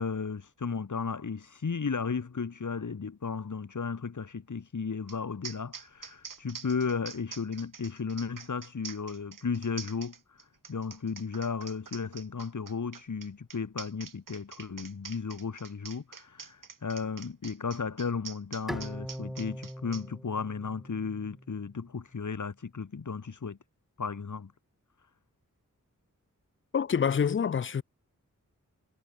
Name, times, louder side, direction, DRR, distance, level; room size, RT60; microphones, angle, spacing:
voice 1, 0.0-23.6 24.0-24.5, left 5 dB, 70° left, 2.3 m, -34 dB
sound 1, 5.1-5.2 5.4-20.0, right 6 dB, 90° right, 1.9 m, -45 dB
Bowed string instrument, 18.7-21.9, equal, ahead, 1.1 m, -41 dB
voice 2, 26.7-27.8, left 7 dB, 40° left, 0.5 m, -26 dB
wide cardioid pair, 70°, 32 cm